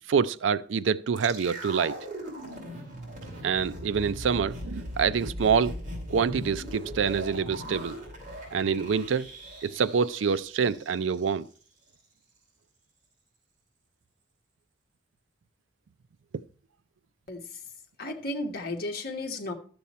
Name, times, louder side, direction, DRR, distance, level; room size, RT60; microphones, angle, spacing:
voice 1, 0.1-2.0 3.4-5.8 6.1-8.0 8.5-9.3 9.6-11.5, right 6 dB, 80° right, 0.4 m, -26 dB
sound 1, 1.1-11.3 11.5-11.6, equal, 45° right, 2.8 m, -39 dB
voice 2, 18.0-19.5, left 2 dB, 55° left, 1.3 m, -33 dB
12.0 x 7.1 x 4.2 m
head